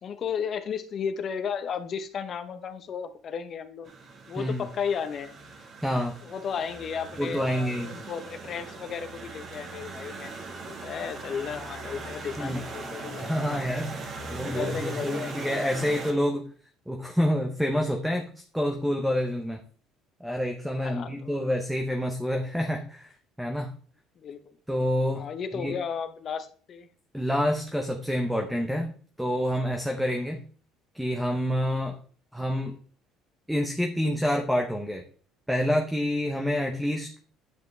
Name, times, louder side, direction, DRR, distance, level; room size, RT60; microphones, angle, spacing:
voice 1, 0.0-3.9 4.3-5.4 6.2-13.7 14.2-15.5 20.7-21.4 24.2-24.6 25.2-26.9, left 7 dB, 40° left, 10 dB, 0.9 m, -34 dB
sound 1, 3.8-16.1, right 3 dB, 40° right, 1.5 m, -40 dB
voice 2, 4.4-4.7 5.8-6.1 7.2-7.9 12.4-12.6 13.2-14.0 14.3-16.4 16.9-19.6 20.2-23.1 23.4-23.7 24.7-25.3 25.5-25.7 27.1-28.9 29.2-30.4 30.9-32.0 32.3-32.8 33.5-35.0 35.5-37.1, equal, ahead, 3 dB, 0.9 m, -27 dB
9.4 x 5.8 x 3.3 m, 0.43 s
cardioid pair, 130°, 0 cm